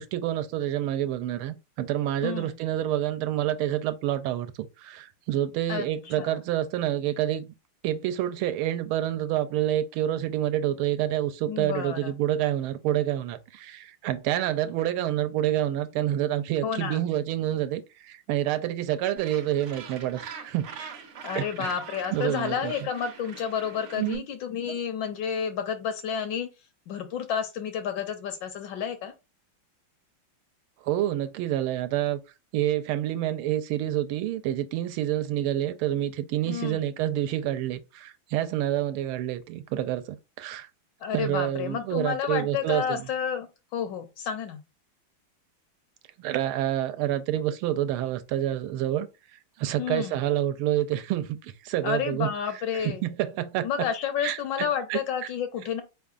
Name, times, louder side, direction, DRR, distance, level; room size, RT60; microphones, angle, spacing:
voice 1, 0.0-4.5 4.8-7.4 7.8-21.0 21.3-21.8 22.1-22.7 24.0-24.2 24.7-24.8 30.8-32.2 32.5-40.7 41.1-43.1 46.2-49.1 49.6-52.3 52.7-53.9 54.2-55.0, right 12 dB, 85° right, 1.4 m, -28 dB
voice 2, 2.2-2.5 5.7-6.4 11.5-12.1 16.6-17.0 21.2-26.5 26.9-29.1 36.5-36.9 41.0-43.5 43.7-44.6 49.8-50.2 51.8-53.0 53.6-55.8, left 7 dB, 75° left, 1.1 m, -30 dB
Gull seagull, 19.2-24.2, right 6 dB, 65° right, 1.2 m, -43 dB
4.4 x 3.6 x 2.4 m
omnidirectional pair, 2.3 m